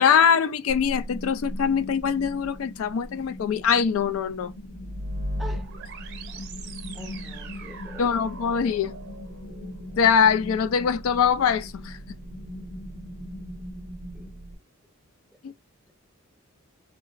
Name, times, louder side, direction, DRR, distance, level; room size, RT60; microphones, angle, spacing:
voice 1, 0.0-4.5 8.0-8.9 10.0-12.0 15.4-15.5, left 7 dB, 85° left, 0.3 m, -22 dB
sound 1, 0.7-14.3, left 1 dB, 65° left, 1.1 m, -40 dB
sound 2, 4.6-14.6, right 1 dB, 55° right, 0.7 m, -39 dB
voice 2, 5.4-5.7 6.3-6.5 6.9-9.0 14.1-14.4, equal, ahead, 0.6 m, -45 dB
3.8 x 2.1 x 2.5 m
head